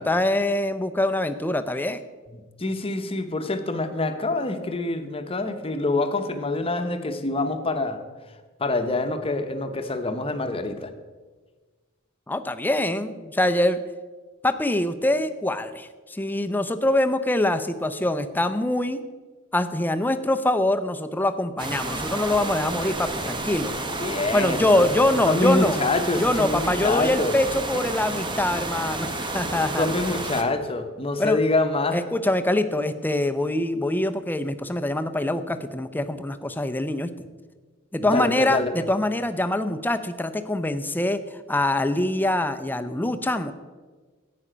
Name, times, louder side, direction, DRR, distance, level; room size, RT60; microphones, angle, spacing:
voice 1, 0.0-2.0 12.3-13.8 14.4-19.0 19.5-23.8 24.3-25.8 26.2-29.9 31.2-31.4 31.9-37.1 37.9-41.2 41.5-43.5, left 1 dB, 10° left, 9 dB, 0.5 m, -24 dB
voice 2, 2.6-8.0 8.6-10.9 24.0-24.9 25.2-27.4 29.5-32.0 38.0-38.7, left 2 dB, 25° left, 7 dB, 0.8 m, -26 dB
sound 1, 21.6-30.4, right 2 dB, 20° right, 0.9 m, -30 dB
11.0 x 8.5 x 5.0 m, 1.4 s
head